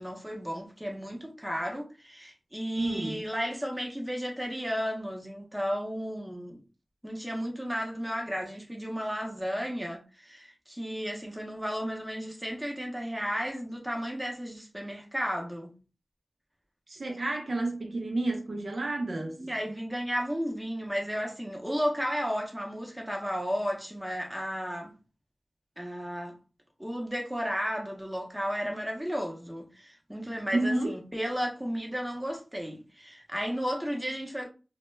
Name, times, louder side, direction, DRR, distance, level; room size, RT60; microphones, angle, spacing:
voice 1, 0.0-6.6 7.0-15.7 19.4-24.9 25.8-26.4 26.8-34.5, equal, 10° right, 0.7 m, -33 dB
voice 2, 2.8-3.2 16.9-19.4 30.5-30.9, right 2 dB, 65° right, 0.5 m, -30 dB
2.2 x 2.1 x 3.1 m
wide cardioid pair, 60°, 0 cm